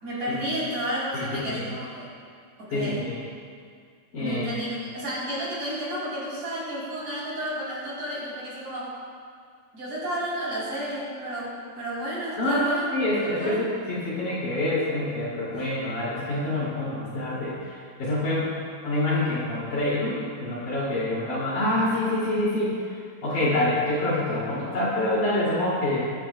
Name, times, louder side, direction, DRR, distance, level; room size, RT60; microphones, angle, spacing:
voice 1, 0.0-2.1 2.6-3.1 4.2-8.9 9.7-12.9 13.2-13.6 15.5-15.7, equal, 45° right, -8 dB, 4.7 m, -32 dB
voice 2, 1.1-1.6 2.7-3.2 4.1-4.7 12.4-18.5 18.8-22.9 23.2-26.0, left 1 dB, 50° left, -8 dB, 3.6 m, -26 dB
21.0 x 11.5 x 2.3 m, 2.1 s
omnidirectional pair, 5.4 m